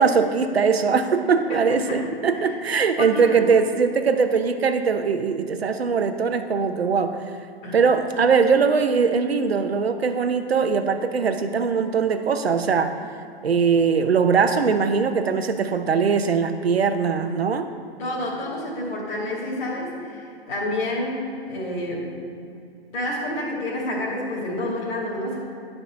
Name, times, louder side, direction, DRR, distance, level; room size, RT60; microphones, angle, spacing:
voice 1, 0.0-7.2 7.7-12.9 13.4-17.7, right 5 dB, 80° right, 8 dB, 0.8 m, -21 dB
voice 2, 1.5-2.0 2.3-2.5 3.0-3.4 7.6-7.8 18.0-21.2 21.5-22.1 22.9-25.4, left 1 dB, 50° left, -5 dB, 2.6 m, -29 dB
12.0 x 5.0 x 6.4 m, 2.6 s
figure-of-eight pair, 110°, 30 cm